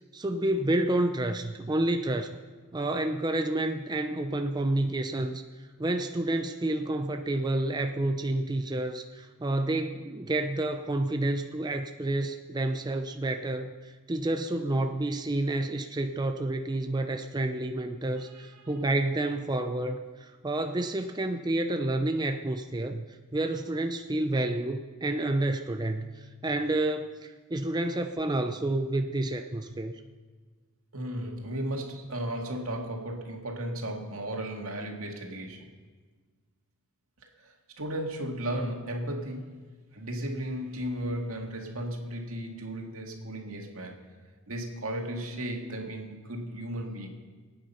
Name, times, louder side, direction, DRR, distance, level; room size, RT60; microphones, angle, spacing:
voice 1, 0.1-2.4 2.7-5.4 5.8-23.0 23.3-30.0, right 1 dB, 20° right, 6 dB, 0.5 m, -29 dB
voice 2, 18.2-18.8 30.9-35.7 37.4-39.6 39.9-44.0 44.5-47.1, right 1 dB, 80° right, 1 dB, 2.2 m, -35 dB
24.0 x 9.3 x 5.6 m, 1.4 s
head